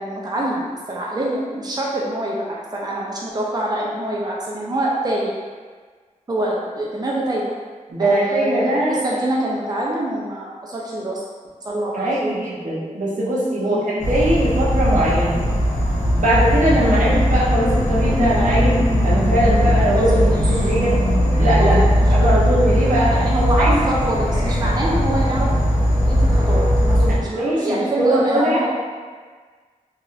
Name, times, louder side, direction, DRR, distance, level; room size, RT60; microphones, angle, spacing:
voice 1, 0.0-5.3 6.3-7.5 8.0-11.2 11.6-12.3 13.6-14.0 19.9-20.7 21.3-22.3 23.1-25.5 26.1-28.7, right 1 dB, 30° right, -4 dB, 0.5 m, -25 dB
voice 2, 7.9-9.0 11.9-15.4 16.1-20.1 20.5-21.0 21.4-21.8 22.1-23.1 23.6-23.8 27.0-28.7, right 1 dB, 70° right, -7 dB, 0.9 m, -20 dB
Insect / Frog, 14.0-27.2, equal, 55° left, 0.9 m, -18 dB
2.9 x 2.8 x 2.5 m, 1.5 s
cardioid pair, 45°, 14 cm